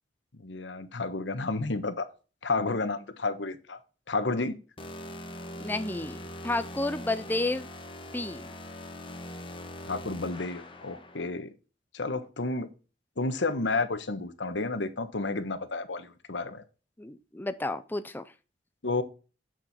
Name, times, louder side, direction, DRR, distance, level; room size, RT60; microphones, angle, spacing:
voice 1, 0.3-2.1 2.4-3.8 4.1-4.5 9.9-11.5 11.9-12.7 13.2-16.6 18.8-19.0, left 3 dB, 85° left, 1.2 m, -31 dB
sound 1, 4.8-11.3, left 1 dB, 30° left, 1.4 m, -42 dB
voice 2, 5.5-7.7 8.1-8.5 17.0-18.3, left 2 dB, 10° left, 0.5 m, -31 dB
7.8 x 7.5 x 4.2 m
head